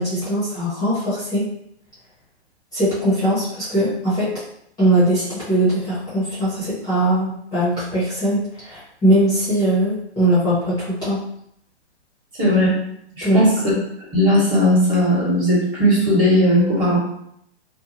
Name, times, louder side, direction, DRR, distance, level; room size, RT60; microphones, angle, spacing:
voice 1, 0.0-1.4 2.7-4.3 4.8-11.2 13.2-13.5, right 1 dB, 10° left, -10 dB, 0.8 m, -20 dB
voice 2, 12.4-12.7 13.1-13.5 14.1-17.0, equal, 20° right, -6 dB, 1.2 m, -17 dB
2.8 x 2.2 x 2.8 m, 0.73 s
hypercardioid pair, 135°, 35 cm